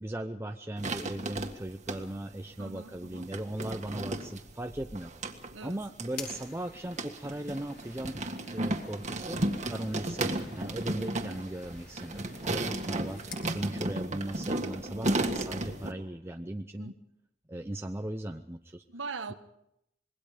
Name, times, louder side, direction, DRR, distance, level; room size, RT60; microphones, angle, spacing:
voice 1, 0.0-5.1 5.6-8.2 8.5-9.4 9.7-16.9 17.5-18.8, right 1 dB, 15° right, 0.7 m, -38 dB
sound 1, 0.8-2.2 2.9-15.9, right 2 dB, 40° right, 1.8 m, -34 dB
voice 2, 2.6-3.3 5.5-5.8 10.9-11.3 12.5-12.8 16.8-16.9 18.9-19.3, right 4 dB, 80° right, 1.3 m, -42 dB
sound 2, 6.1-13.5, left 5 dB, 55° left, 5.1 m, -50 dB
26.0 x 21.5 x 5.1 m
head